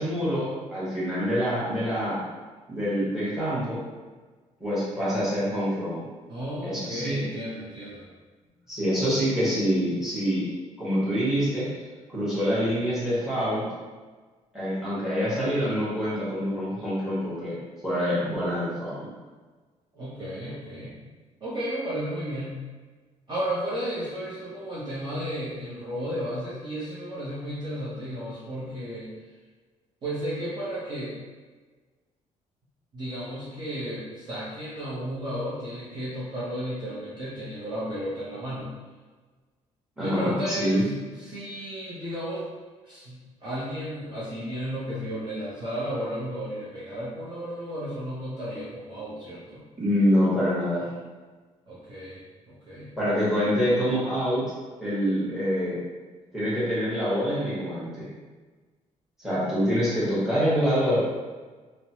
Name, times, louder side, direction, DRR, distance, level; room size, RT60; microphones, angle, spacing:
voice 1, 0.0-2.2 2.7-3.8 4.6-6.0 6.6-7.2 8.7-10.5 10.8-11.7 12.1-13.6 14.5-17.6 17.8-19.1 40.0-40.9 49.8-50.9 53.0-54.5 54.8-55.8 56.3-58.1 59.2-61.0, equal, 5° right, -9 dB, 1.1 m, -26 dB
voice 2, 6.3-8.1 19.9-21.0 21.4-22.6 23.3-29.1 30.0-31.2 32.9-38.7 40.0-40.9 41.2-42.4 42.8-49.6 51.7-52.9, equal, 35° right, -9 dB, 0.7 m, -33 dB
3.1 x 2.1 x 2.8 m, 1.4 s
cardioid pair, 155°, 13 cm